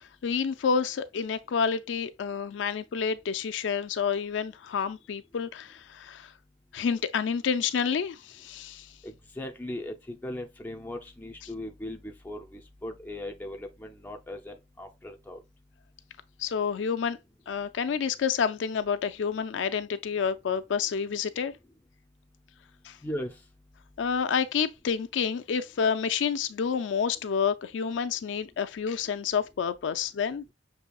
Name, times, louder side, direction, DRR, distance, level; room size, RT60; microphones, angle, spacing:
voice 1, 0.2-6.3 6.7-8.9 16.4-17.2 17.5-21.5 22.8-23.0 24.0-30.4, left 6 dB, 80° left, 0.4 m, -29 dB
voice 2, 9.0-15.4 23.0-23.3, left 1 dB, 10° left, 0.4 m, -38 dB
6.7 x 2.7 x 2.3 m
head